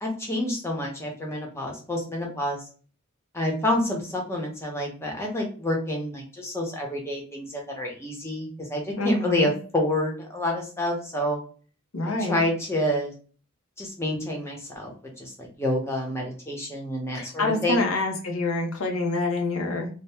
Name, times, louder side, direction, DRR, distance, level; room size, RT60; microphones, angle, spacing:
voice 1, 0.0-2.6 3.3-11.4 12.2-13.1 13.8-14.9 15.2-17.9, left 1 dB, 10° left, 0 dB, 0.7 m, -28 dB
voice 2, 9.0-9.5 11.9-12.4 17.1-19.9, left 2 dB, 80° left, 3 dB, 0.7 m, -26 dB
2.7 x 2.1 x 3.3 m, 0.39 s
head